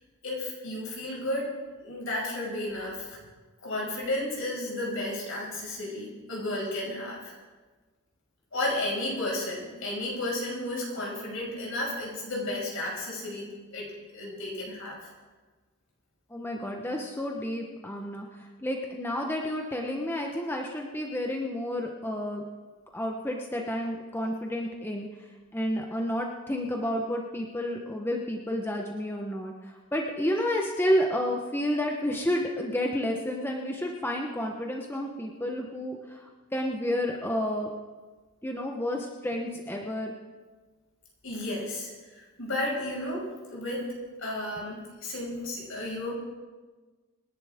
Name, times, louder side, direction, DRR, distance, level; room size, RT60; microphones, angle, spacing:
voice 1, 0.2-3.2 3.6-7.3 8.5-15.1 41.2-43.9 44.2-46.1, left 1 dB, 65° left, -3 dB, 5.9 m, -33 dB
voice 2, 16.3-22.4 22.9-25.1 25.5-36.3 36.5-37.7 38.4-40.1, equal, 10° left, 1 dB, 1.0 m, -30 dB
26.5 x 11.0 x 3.7 m, 1.3 s
head